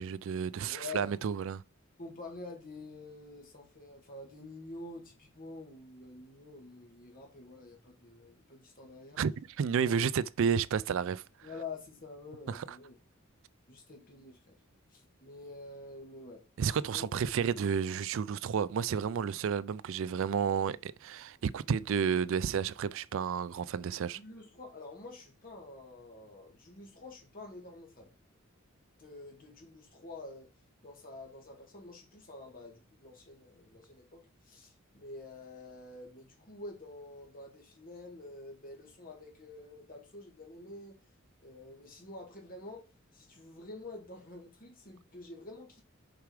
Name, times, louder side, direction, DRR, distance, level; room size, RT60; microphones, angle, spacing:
voice 1, 0.0-1.6 9.2-11.2 12.5-12.6 16.6-24.2, right 7 dB, 65° right, 0.4 m, -31 dB
voice 2, 0.7-1.1 2.0-9.2 9.9-10.1 11.4-12.9 13.7-14.5 14.9-16.4 16.7-17.1 24.1-28.1 29.0-30.5 30.8-41.0 41.4-45.8, left 2 dB, 45° left, 2.5 m, -48 dB
6.9 x 4.8 x 4.8 m
head